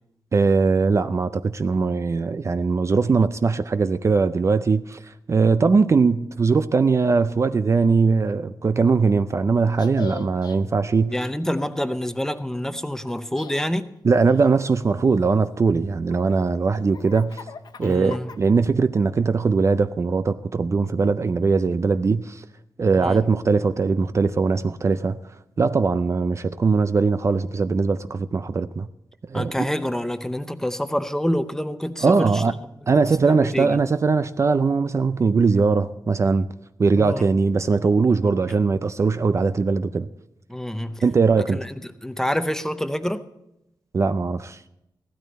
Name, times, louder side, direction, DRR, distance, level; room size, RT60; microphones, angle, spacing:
voice 1, 0.3-11.2 14.0-17.4 17.8-22.4 22.8-25.2 25.6-28.9 29.3-29.7 32.0-32.5 32.9-36.5 36.8-40.1 41.0-41.6 43.9-44.6, right 4 dB, 40° right, 0.4 m, -20 dB
Laughter, 9.7-10.6 13.1-13.7 14.3-15.5 16.1-18.7, left 6 dB, 65° left, 0.8 m, -41 dB
voice 2, 11.1-13.9 17.8-18.3 22.9-23.2 29.3-32.7 33.2-33.8 37.0-37.2 40.5-41.0 41.5-41.7 42.0-43.2, equal, 5° left, 0.6 m, -27 dB
15.5 x 12.5 x 4.1 m
wide cardioid pair, 125°, 8 cm